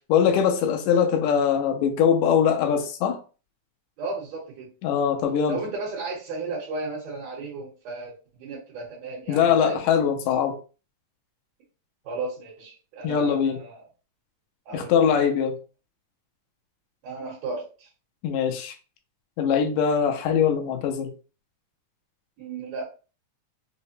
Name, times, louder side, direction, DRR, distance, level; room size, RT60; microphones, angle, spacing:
voice 1, 0.1-3.2 4.8-5.6 9.3-10.6 13.0-13.6 14.7-15.6 18.2-18.7 19.4-21.1, left 7 dB, 80° left, 1.6 m, -22 dB
voice 2, 4.0-4.7 5.5-9.8 12.0-13.8 14.7-15.3 17.0-17.9 22.4-22.8, right 3 dB, 70° right, 2.1 m, -34 dB
4.9 x 2.0 x 2.6 m
omnidirectional pair, 3.6 m